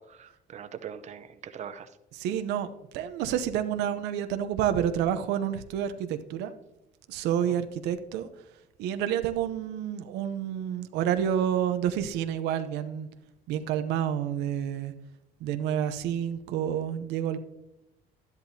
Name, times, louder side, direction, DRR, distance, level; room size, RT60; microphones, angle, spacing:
voice 1, 0.0-1.9 7.4-7.6, right 8 dB, 45° right, 10 dB, 0.6 m, -42 dB
voice 2, 2.1-6.5 7.1-8.3 8.8-13.1 13.5-14.9 15.4-17.4, right 9 dB, 90° right, 9 dB, 0.7 m, -29 dB
11.5 x 10.5 x 2.7 m, 0.88 s
cardioid pair, 110°, 17 cm